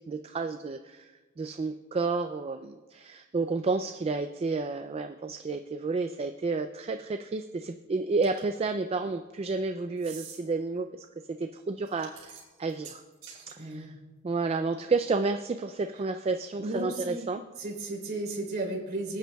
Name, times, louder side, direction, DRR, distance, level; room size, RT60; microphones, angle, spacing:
voice 1, 0.1-11.1 11.4-13.0 13.5-13.9 14.2-17.4, right 3 dB, 30° right, 7 dB, 0.3 m, -31 dB
sound 1, 8.2-8.6 10.0-10.4 11.9-13.5, right 7 dB, 75° right, 4.2 m, -46 dB
voice 2, 13.6-14.0 16.6-17.3 17.6-19.2, right 2 dB, 50° right, -2 dB, 3.2 m, -34 dB
24.5 x 9.0 x 2.3 m, 1.2 s
head